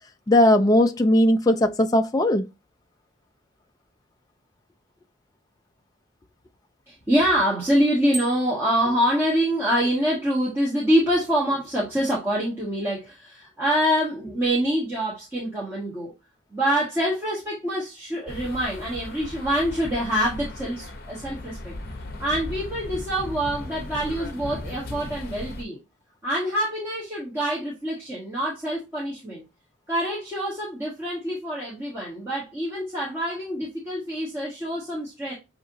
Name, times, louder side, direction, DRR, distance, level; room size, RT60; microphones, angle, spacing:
voice 1, 0.3-2.5, left 1 dB, 20° left, 0.3 m, -18 dB
voice 2, 6.9-16.1 16.5-21.7 22.2-25.8 26.2-29.4 29.9-35.3, equal, 10° right, 1.5 m, -25 dB
Bicycle bell, 8.1-8.7, right 3 dB, 45° right, 2.2 m, -35 dB
sound 1, 18.3-25.6, left 2 dB, 50° left, 0.7 m, -37 dB
6.9 x 2.9 x 2.6 m
head